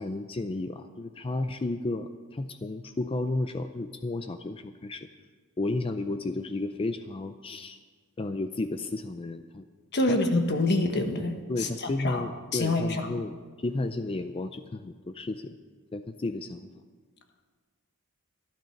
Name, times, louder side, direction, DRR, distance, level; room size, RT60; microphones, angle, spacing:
voice 1, 0.0-5.1 5.6-7.8 8.2-9.7 10.1-10.2 11.5-15.5 15.9-16.7, left 2 dB, 25° left, 9 dB, 0.4 m, -32 dB
voice 2, 9.9-11.7 12.0-12.2 12.5-13.1, left 2 dB, 50° left, 5 dB, 1.3 m, -26 dB
12.5 x 12.0 x 5.9 m, 1.5 s
head